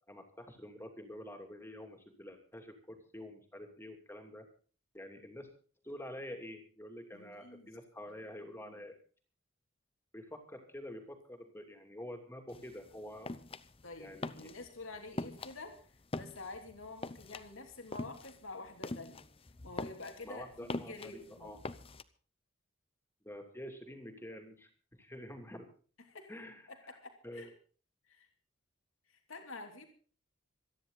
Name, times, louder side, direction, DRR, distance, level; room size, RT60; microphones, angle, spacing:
voice 1, 0.1-4.5 4.9-5.5 5.8-8.9 10.1-13.3 14.0-14.5 20.2-21.6 23.2-24.7 25.0-25.7 26.3-26.7 27.2-27.5, left 1 dB, 10° left, 4 dB, 2.7 m, -47 dB
voice 2, 7.1-7.7 8.6-8.8 13.8-15.8 16.1-19.3 19.6-21.6 26.1-26.3 26.7-27.5 28.1-28.3 29.1-29.9, left 3 dB, 90° left, 3 dB, 2.9 m, -48 dB
sound 1, 12.5-22.0, left 2 dB, 30° left, 0.8 m, -44 dB
27.0 x 10.5 x 3.9 m, 0.42 s
head